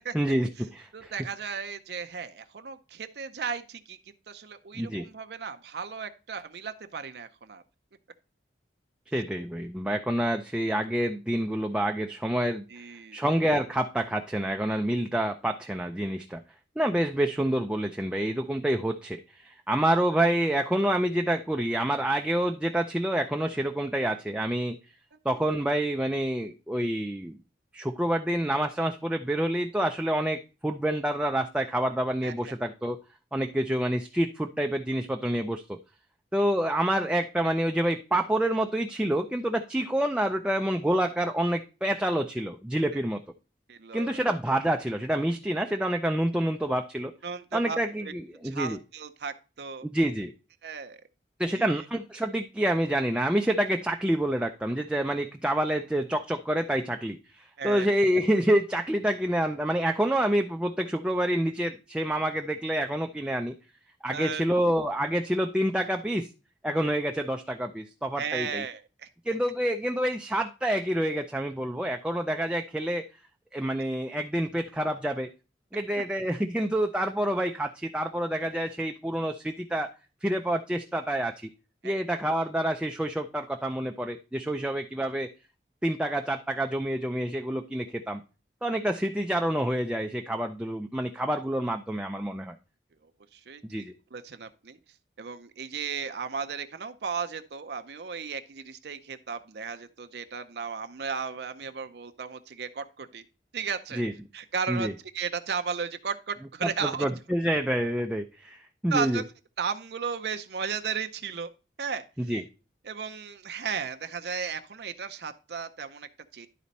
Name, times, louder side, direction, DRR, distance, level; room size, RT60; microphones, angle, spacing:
voice 1, 0.1-1.1 4.8-5.1 9.1-12.6 13.1-16.4 16.8-24.8 25.3-27.4 27.7-33.0 33.3-35.8 36.3-43.2 43.9-47.1 47.5-48.8 49.8-50.3 51.4-63.5 64.0-66.3 66.6-68.6 69.3-73.0 73.5-75.3 75.7-79.9 80.2-81.5 81.8-85.3 85.8-88.2 88.6-92.6 93.6-93.9 104.0-104.1 104.7-104.9 106.6-109.2 112.3-112.4, right 1 dB, 5° right, 4 dB, 0.4 m, -27 dB
voice 2, 0.9-4.0 4.3-7.6 12.7-13.2 32.2-32.5 43.7-44.2 47.2-48.1 48.4-49.9 50.6-51.0 51.5-51.8 57.6-57.9 64.1-64.4 68.2-69.1 81.8-81.9 84.5-84.6 93.3-94.8 95.2-103.3 103.5-104.0 104.3-107.1 108.9-109.2 109.6-111.5 111.8-112.3 112.8-116.5, right 6 dB, 70° right, 8 dB, 0.6 m, -35 dB
11.5 x 4.2 x 4.1 m, 0.32 s
head